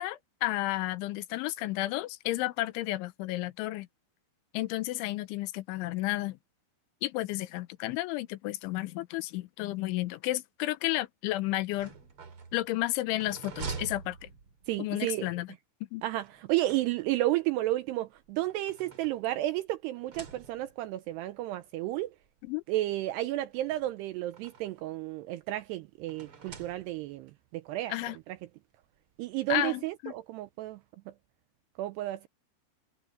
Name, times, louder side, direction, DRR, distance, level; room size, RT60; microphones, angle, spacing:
voice 1, 0.0-3.9 4.5-6.4 7.0-11.9 12.5-14.2 14.8-15.5 15.9-16.0 22.4-22.6 27.9-28.2 29.5-30.1, left 17 dB, 85° left, 3.2 m, -32 dB
sound 1, 11.6-14.9 16.2-17.4 18.2-19.6 19.9-20.9 21.8-21.9 22.2-22.3 23.5-24.9 26.1-27.3, right 5 dB, 40° right, 2.5 m, -46 dB
voice 2, 14.7-15.3 16.0-22.1 22.7-27.9 29.2-30.8 31.8-32.3, right 15 dB, 85° right, 2.4 m, -32 dB
omnidirectional pair, 5.4 m